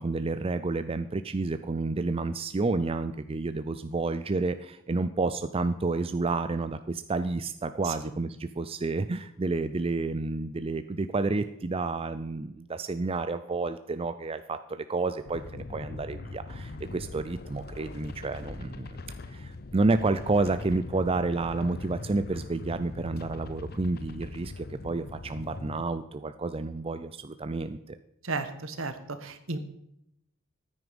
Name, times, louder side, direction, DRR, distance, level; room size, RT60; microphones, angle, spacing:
voice 1, 0.0-19.0 19.3-28.0, right 3 dB, 30° right, 11 dB, 0.5 m, -30 dB
sound 1, 15.3-25.8, left 3 dB, 50° left, 0.7 m, -41 dB
voice 2, 28.2-29.6, right 3 dB, 70° right, 10 dB, 1.4 m, -34 dB
14.5 x 9.6 x 5.3 m, 0.80 s
head